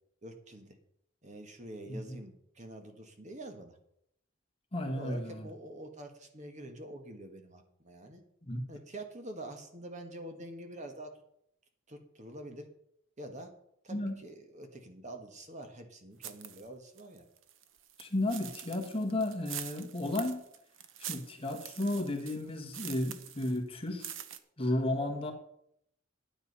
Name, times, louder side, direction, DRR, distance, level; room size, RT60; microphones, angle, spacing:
voice 1, 0.2-0.8 1.2-3.8 4.9-8.2 8.7-11.1 11.9-12.7 13.2-13.5 13.8-17.3, right 1 dB, 35° right, 1.5 m, -46 dB
voice 2, 4.7-5.4 8.5-8.6 13.9-14.2 18.0-20.4 21.1-24.1 24.6-25.3, left 1 dB, 30° left, 1.5 m, -33 dB
sound 1, 16.2-16.7 17.0-23.6 23.9-24.4, right 10 dB, 75° right, 0.9 m, -45 dB
9.9 x 9.5 x 5.5 m
head